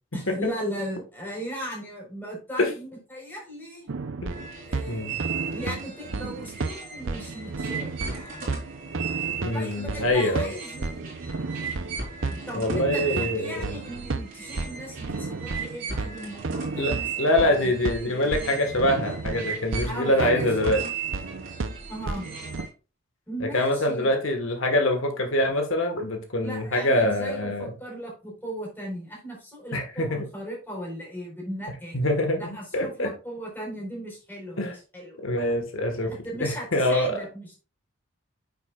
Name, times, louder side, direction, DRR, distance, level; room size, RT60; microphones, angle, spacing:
voice 1, 0.1-3.9 4.6-5.1 5.5-8.5 9.5-11.2 12.2-17.7 18.0-18.3 19.8-20.8 21.9-22.3 23.3-24.1 26.4-32.0 32.3-35.5 36.1-37.6, right 1 dB, 10° left, 4.4 m, -37 dB
sound 1, 3.9-22.7, right 3 dB, 70° right, 0.7 m, -33 dB
sound 2, 4.3-22.7, right 7 dB, 40° right, 4.5 m, -37 dB
voice 2, 4.9-5.2 9.4-10.5 12.5-13.7 16.8-20.8 23.4-27.7 29.7-30.2 31.9-33.1 34.6-34.8 35.2-36.1 36.4-37.2, left 1 dB, 80° left, 1.5 m, -25 dB
9.5 x 7.0 x 2.4 m
head